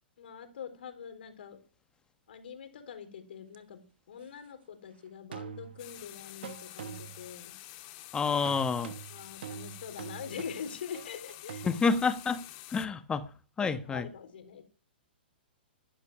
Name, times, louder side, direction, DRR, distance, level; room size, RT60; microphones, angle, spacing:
voice 1, 0.2-1.6 2.3-7.6 9.1-11.7 13.6-14.6, left 7 dB, 70° left, 4.0 m, -44 dB
sound 1, 3.5-3.6 5.3-6.0 6.4-7.3 8.5-11.8, right 9 dB, 65° right, 1.3 m, -44 dB
sound 2, 5.8-12.9, left 17 dB, 45° left, 1.9 m, -48 dB
voice 2, 8.1-8.9 11.6-12.4 12.7-13.2 13.6-14.1, left 5 dB, 15° left, 1.2 m, -28 dB
15.5 x 12.0 x 6.2 m
hypercardioid pair, 125°, 6 cm